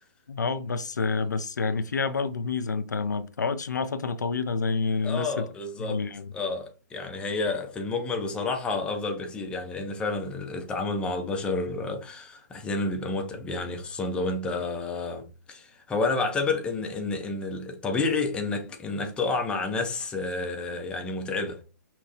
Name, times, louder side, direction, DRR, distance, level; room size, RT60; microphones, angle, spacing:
voice 1, 0.3-5.4 5.8-6.3, left 4 dB, 70° left, 0.4 m, -28 dB
voice 2, 5.0-6.0 6.3-21.6, left 3 dB, 10° left, 0.6 m, -30 dB
5.6 x 2.2 x 2.8 m
figure-of-eight pair, 125°, 10 cm